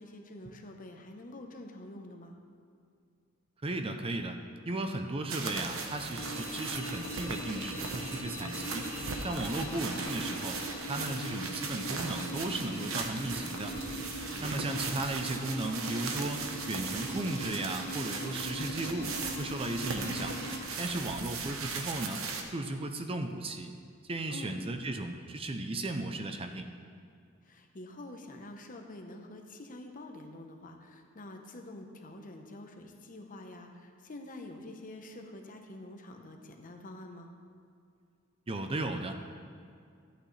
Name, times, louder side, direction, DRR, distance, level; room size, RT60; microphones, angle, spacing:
voice 1, 0.0-2.4 14.3-14.6 24.3-24.6 27.4-37.3, left 1 dB, 40° left, 3 dB, 0.9 m, -47 dB
voice 2, 3.6-4.4 4.7-8.9 9.2-10.6 10.8-13.7 14.4-20.4 20.8-23.7 24.1-26.7 38.5-39.4, right 2 dB, 25° right, 6 dB, 0.5 m, -35 dB
sound 1, 5.3-22.4, right 4 dB, 70° right, 0.9 m, -38 dB
sound 2, 6.2-20.6, equal, 85° left, 2.3 m, -41 dB
13.5 x 8.9 x 3.3 m, 2.3 s
head